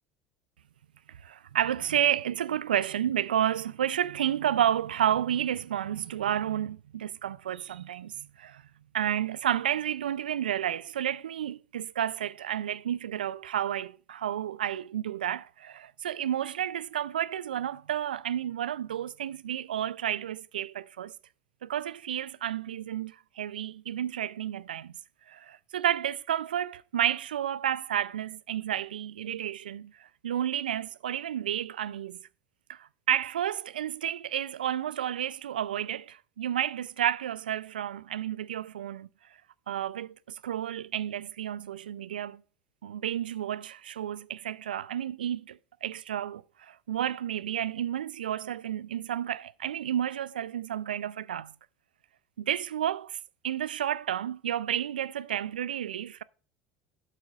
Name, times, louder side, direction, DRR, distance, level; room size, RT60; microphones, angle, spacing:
voice 1, 1.2-8.6 8.9-21.2 21.6-24.9 25.3-32.2 32.7-39.1 39.7-42.4 42.8-51.5 52.4-53.2 53.4-56.2, right 10 dB, 85° right, 0.3 m, -31 dB
12.5 x 7.5 x 2.4 m
hypercardioid pair, 75°, 5 cm